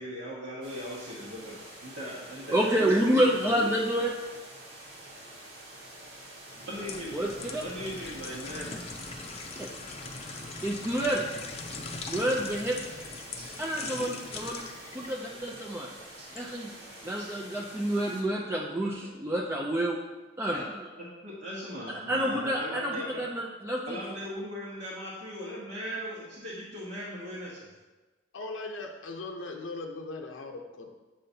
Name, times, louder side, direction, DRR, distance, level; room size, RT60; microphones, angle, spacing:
voice 1, 0.0-3.3 3.5-3.7 6.6-7.3 7.6-8.8 13.4-13.5 15.5-15.6 16.2-16.5 17.2-17.3 19.0-19.1 20.5-20.6 21.0-23.2 23.9-27.7, equal, 60° right, -7 dB, 1.3 m, -39 dB
sound 1, 0.6-18.2, right 1 dB, 80° right, 2.0 m, -47 dB
voice 2, 2.5-4.2 7.1-7.6 9.6-9.7 10.6-11.2 12.1-12.8 13.6-14.7 14.9-15.9 16.3-16.7 17.0-20.0 20.4-20.9 21.9-24.0, right 1 dB, 15° right, -2 dB, 0.4 m, -28 dB
sound 2, 6.5-16.5 16.9-17.1, left 3 dB, 35° left, 0.6 m, -41 dB
voice 3, 28.3-30.9, left 3 dB, 85° left, 2 dB, 0.6 m, -39 dB
7.6 x 5.5 x 2.7 m, 1.2 s
head